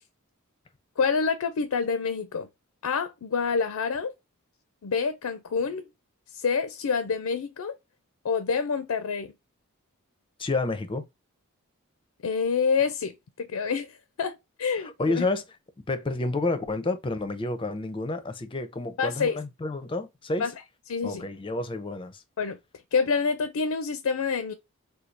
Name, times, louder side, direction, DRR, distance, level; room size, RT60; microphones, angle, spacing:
voice 1, 1.0-2.5 2.8-4.1 4.8-5.9 6.3-7.8 8.2-9.3 12.2-15.2 19.0-19.4 20.4-20.5 20.9-21.3 22.4-22.6 22.9-24.5, left 5 dB, 80° left, 0.4 m, -27 dB
voice 2, 10.4-11.0 14.8-15.4 15.9-20.5 21.0-22.2, left 2 dB, 25° left, 0.5 m, -30 dB
4.4 x 2.3 x 2.5 m
head